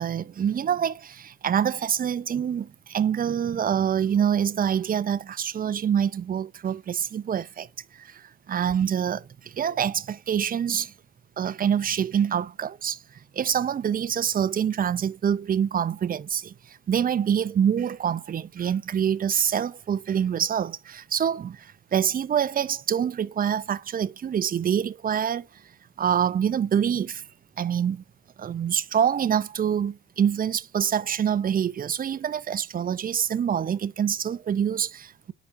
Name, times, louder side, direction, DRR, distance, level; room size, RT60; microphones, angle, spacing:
voice 1, 0.0-7.7 7.9-10.9 11.4-13.0 13.3-25.5 26.0-27.3 27.6-28.0 28.4-35.3, right 8 dB, 30° right, 0.4 m, -26 dB
8.8 x 4.9 x 2.5 m
cardioid pair, 90°, 30 cm